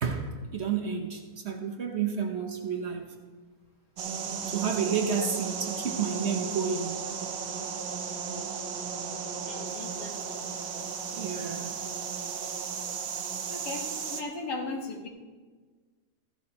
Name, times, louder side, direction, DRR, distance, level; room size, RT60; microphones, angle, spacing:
voice 1, 0.0-3.2 4.5-7.1 11.1-11.9, right 6 dB, 50° right, 3 dB, 1.0 m, -31 dB
sound 1, 4.0-14.2, right 6 dB, 65° right, 1.2 m, -35 dB
voice 2, 9.5-10.4 13.5-15.1, left 3 dB, 90° left, 2 dB, 1.9 m, -37 dB
14.0 x 12.0 x 2.9 m, 1.4 s
omnidirectional pair, 1.7 m